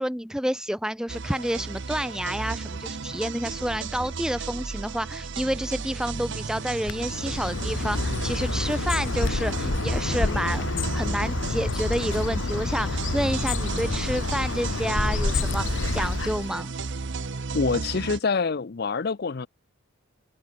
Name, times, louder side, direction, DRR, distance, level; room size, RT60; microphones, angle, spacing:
voice 1, 0.0-10.6 10.9-16.7, equal, 5° right, 1.3 m, -29 dB
sound 1, 1.1-18.2, right 4 dB, 60° right, 0.7 m, -34 dB
Bird, 6.8-16.6, left 3 dB, 70° left, 0.9 m, -28 dB
voice 2, 17.5-19.5, left 4 dB, 50° left, 0.5 m, -26 dB
open air
head